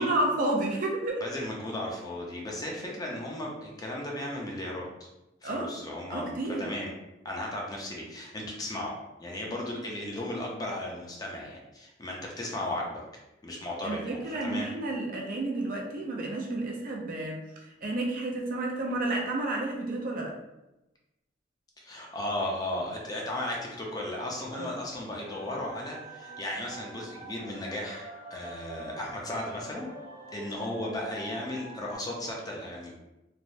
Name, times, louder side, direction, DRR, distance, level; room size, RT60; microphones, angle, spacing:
voice 1, 0.0-1.2 5.4-5.7 6.1-6.7 13.8-20.3 24.5-24.7, right 2 dB, 45° right, 0 dB, 0.5 m, -31 dB
voice 2, 1.2-5.1 5.4-6.9 7.2-8.9 9.2-13.0 13.4-14.7 21.8-29.9 30.3-32.9, left 1 dB, 20° left, -2 dB, 0.5 m, -35 dB
sound 1, 25.1-31.9, right 2 dB, 25° right, 0.8 m, -46 dB
3.2 x 2.0 x 2.6 m, 0.95 s
head